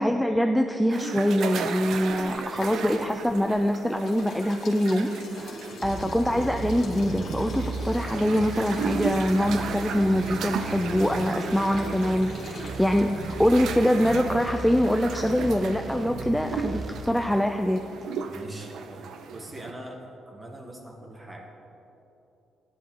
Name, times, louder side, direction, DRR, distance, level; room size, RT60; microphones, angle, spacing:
voice 1, 0.0-17.8, equal, 5° left, 5 dB, 0.4 m, -24 dB
sound 1, 0.9-19.7, right 6 dB, 70° right, 0.6 m, -36 dB
sound 2, 2.2-3.6 4.0-15.8, left 3 dB, 65° left, 2.0 m, -43 dB
sound 3, 5.8-17.0, right 3 dB, 40° right, 1.2 m, -36 dB
voice 2, 18.3-21.6, right 1 dB, 20° right, 2 dB, 1.7 m, -42 dB
13.5 x 10.0 x 3.9 m, 2.9 s
cardioid pair, 90°, 0 cm